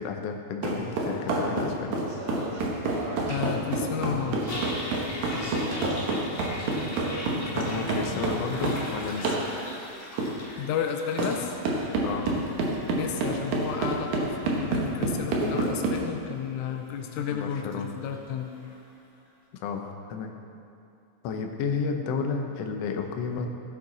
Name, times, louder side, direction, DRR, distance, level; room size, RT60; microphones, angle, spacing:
voice 1, 0.0-2.0 7.5-9.4 12.0-12.3 15.4-15.6 17.3-17.9 19.6-20.3 21.2-23.5, left 5 dB, 70° left, 3 dB, 1.8 m, -32 dB
sound 1, 0.6-8.8 9.2-9.5 10.2-10.3 11.2-11.3 11.6-16.0, right 3 dB, 75° right, 2.7 m, -27 dB
sound 2, 2.1-8.7, right 2 dB, 50° right, 0.6 m, -38 dB
voice 2, 3.3-4.5 10.6-11.5 12.9-18.5, left 8 dB, 85° left, 4 dB, 2.1 m, -32 dB
Toilet flush, 3.6-18.9, left 1 dB, 30° left, 1.8 m, -42 dB
16.0 x 8.9 x 4.0 m, 2.6 s
omnidirectional pair, 3.4 m